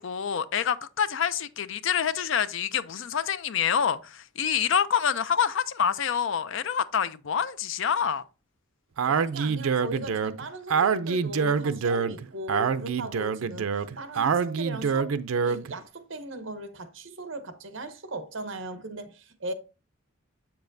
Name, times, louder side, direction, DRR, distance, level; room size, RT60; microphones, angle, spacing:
voice 1, 0.0-8.2, left 7 dB, 65° left, 0.5 m, -27 dB
voice 2, 9.0-19.5, right 2 dB, 65° right, 1.0 m, -38 dB
Speech, 9.0-15.7, right 6 dB, 90° right, 0.5 m, -26 dB
7.5 x 6.9 x 2.6 m
head